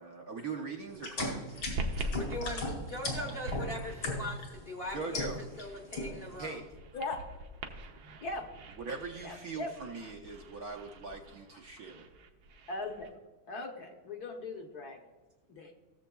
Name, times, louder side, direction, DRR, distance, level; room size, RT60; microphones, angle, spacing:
voice 1, 0.0-1.6 4.9-5.4 6.4-6.7 8.8-12.0, right 4 dB, 60° right, 0 dB, 1.1 m, -41 dB
sound 1, 0.9-4.5 4.9-5.6 5.9-6.3, left 2 dB, 80° left, 3.2 m, -36 dB
sound 2, 1.5-13.1, right 1 dB, 85° right, 1.7 m, -43 dB
voice 2, 2.1-5.3 5.6-6.6, left 1 dB, 40° left, 1 dB, 0.9 m, -40 dB
voice 3, 8.0-8.5 9.2-9.7 12.7-13.1 13.5-15.0 15.5-15.7, left 3 dB, 55° left, 2 dB, 1.3 m, -39 dB
17.0 x 7.2 x 2.3 m, 1.2 s
omnidirectional pair, 2.2 m